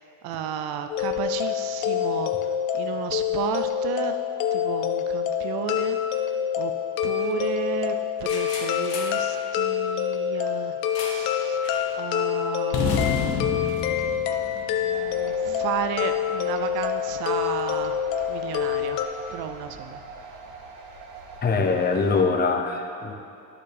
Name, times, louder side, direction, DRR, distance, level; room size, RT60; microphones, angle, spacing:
voice 1, 0.2-2.3 2.7-4.2 4.5-6.0 6.6-6.7 7.0-11.6 12.0-13.7 14.5-18.0 18.3-19.0 19.3-20.0, right 9 dB, 50° right, 8 dB, 0.5 m, -33 dB
sound 1, 0.9-19.1, left 9 dB, 80° left, 0.7 m, -27 dB
sound 2, 8.3-9.3 11.0-11.4 11.6-11.9 12.7-15.1, left 5 dB, 55° left, 1.0 m, -30 dB
sound 3, 14.9-22.2, right 3 dB, 80° right, 0.9 m, -42 dB
voice 2, 21.4-23.1, left 4 dB, 20° left, 3 dB, 0.7 m, -23 dB
12.5 x 4.1 x 3.4 m, 2.5 s
hypercardioid pair, 75°, 49 cm